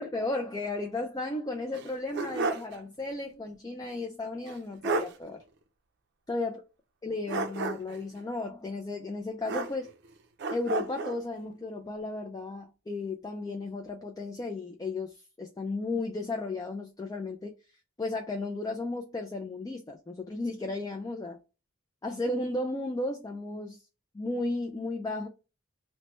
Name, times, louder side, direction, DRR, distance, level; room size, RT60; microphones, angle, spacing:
voice 1, 0.0-5.4 6.3-6.6 7.0-9.9 10.5-17.5 18.0-21.4 22.0-23.8 24.1-25.3, left 2 dB, 20° left, 0.3 m, -34 dB
sound 1, 1.7-2.8 3.1-3.2 4.5-4.6 4.8-5.2 7.3-8.0 9.5-10.1 10.4-11.2, right 3 dB, 60° right, 0.5 m, -32 dB
3.0 x 2.1 x 3.0 m
head